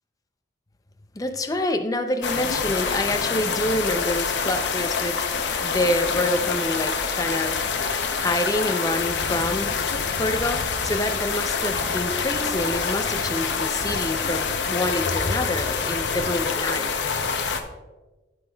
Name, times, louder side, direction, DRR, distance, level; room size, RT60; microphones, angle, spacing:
voice 1, 1.2-7.6 8.2-9.7 10.2-16.9, left 1 dB, 20° left, 7 dB, 0.5 m, -27 dB
sound 1, 2.2-17.6, left 5 dB, 80° left, 0.7 m, -26 dB
12.5 x 6.2 x 2.3 m, 1.2 s
head